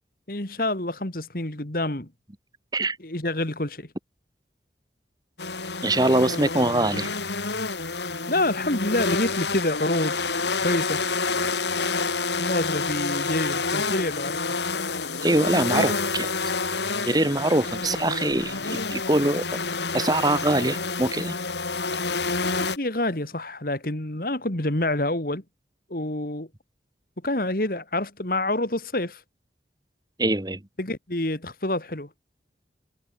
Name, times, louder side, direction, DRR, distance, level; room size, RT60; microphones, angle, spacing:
voice 1, 0.3-2.1 3.0-3.9 7.9-8.0 8.3-10.1 10.6-11.0 12.4-14.6 22.4-25.4 25.9-26.5 27.2-29.2 30.8-32.1, left 1 dB, 50° left, 2.4 m, -27 dB
sound 1, 5.4-22.8, left 4 dB, 75° left, 3.9 m, -28 dB
voice 2, 5.8-7.1 15.2-16.3 17.0-19.6 19.9-21.4 30.2-30.6, right 1 dB, 20° right, 1.2 m, -23 dB
head